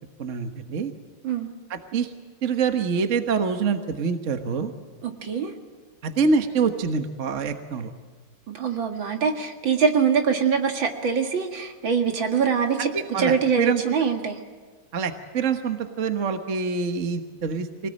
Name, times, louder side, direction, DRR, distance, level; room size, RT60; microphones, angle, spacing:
voice 1, 0.2-0.9 1.7-2.1 2.4-4.7 6.0-7.9 12.8-13.8 14.9-17.9, right 5 dB, 40° right, 7 dB, 1.4 m, -25 dB
voice 2, 5.0-5.5 8.5-12.9 13.2-14.4, right 6 dB, 65° right, 4 dB, 2.8 m, -23 dB
24.5 x 19.0 x 8.8 m, 1.5 s
omnidirectional pair, 2.3 m